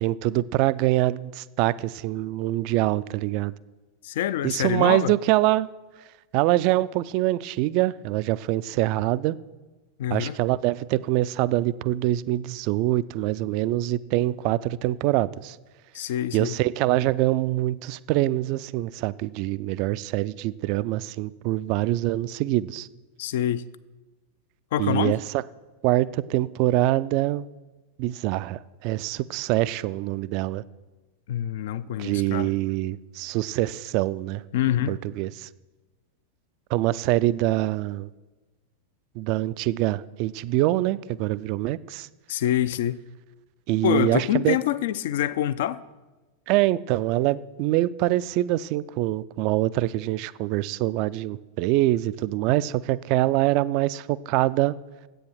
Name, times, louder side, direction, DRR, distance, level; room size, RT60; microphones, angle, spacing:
voice 1, 0.0-3.5 4.4-5.7 6.3-9.4 10.1-15.6 16.3-22.9 24.8-25.4 25.8-27.4 28.0-30.6 32.0-34.4 34.9-35.5 36.7-38.1 39.2-42.1 43.7-44.6 46.5-54.8, right 16 dB, 45° right, 0.3 m, -24 dB
voice 2, 4.0-5.1 10.0-10.4 15.9-16.6 23.2-23.7 24.7-25.2 31.3-32.5 34.5-35.0 42.3-43.0 43.8-45.8, left 11 dB, 55° left, 0.4 m, -26 dB
10.0 x 8.3 x 6.3 m
figure-of-eight pair, 90°, 0 cm